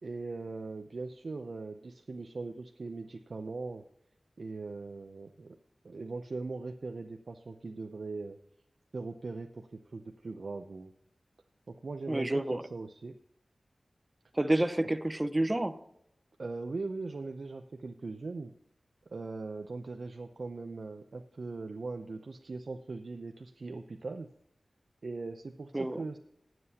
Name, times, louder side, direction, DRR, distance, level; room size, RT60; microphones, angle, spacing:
voice 1, 0.0-3.8 4.4-5.6 5.8-8.4 8.9-10.9 11.7-12.4 12.7-13.2 16.4-18.5 19.1-24.3 25.0-26.2, right 3 dB, 75° right, 6 dB, 0.6 m, -40 dB
voice 2, 12.1-12.6 14.3-15.8 25.7-26.0, right 1 dB, 25° right, 11 dB, 0.9 m, -29 dB
19.5 x 7.7 x 2.9 m, 0.77 s
wide cardioid pair, 60°, 0 cm